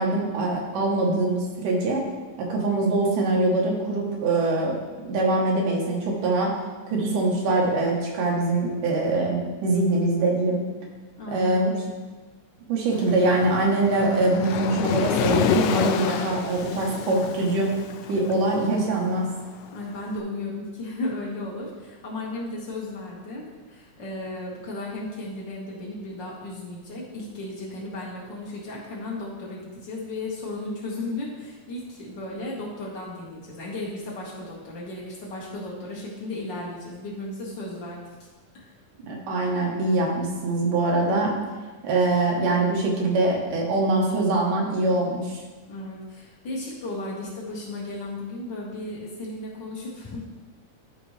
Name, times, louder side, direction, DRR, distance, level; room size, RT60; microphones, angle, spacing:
voice 1, 0.0-2.0 2.4-4.7 5.1-6.5 6.9-10.6 11.3-11.7 12.7-17.7 18.1-19.3 39.0-41.3 41.8-45.4, right 2 dB, 80° right, -2 dB, 2.8 m, -23 dB
voice 2, 11.2-11.6 19.7-38.0 38.5-38.7 45.7-50.2, left 2 dB, 40° left, -5 dB, 2.1 m, -35 dB
Waves surf, 12.9-20.0, left 8 dB, 85° left, 2.2 m, -29 dB
11.5 x 5.1 x 3.3 m, 1.3 s
omnidirectional pair, 3.7 m